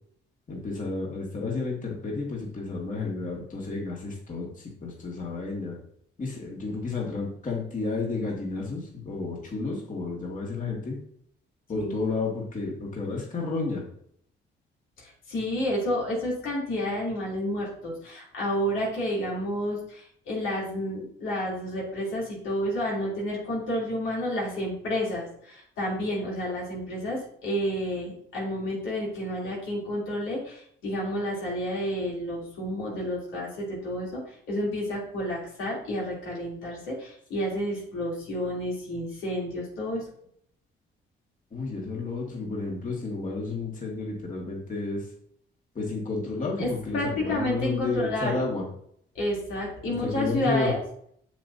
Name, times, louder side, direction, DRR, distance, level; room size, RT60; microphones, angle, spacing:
voice 1, 0.5-5.8 6.2-11.0 11.7-13.8 41.5-45.1 45.8-48.6 49.9-50.7, left 3 dB, 40° left, -2 dB, 2.1 m, -31 dB
voice 2, 15.0-40.0 46.6-48.4 49.1-50.8, equal, 90° left, -4 dB, 3.2 m, -30 dB
7.3 x 7.2 x 2.8 m, 0.66 s
cardioid pair, 90°, 20 cm